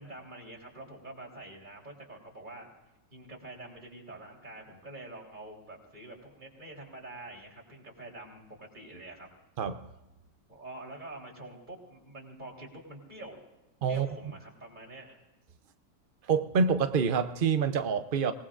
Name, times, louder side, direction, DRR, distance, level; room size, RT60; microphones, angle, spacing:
voice 1, 0.0-2.7 3.1-9.3 10.5-13.4 13.9-15.2 18.2-18.3, right 2 dB, 25° right, -2 dB, 3.7 m, -46 dB
voice 2, 9.6-9.9 13.8-14.1 16.2-18.3, right 5 dB, 75° right, 9 dB, 0.4 m, -27 dB
25.5 x 19.0 x 2.5 m, 1.0 s
omnidirectional pair, 1.9 m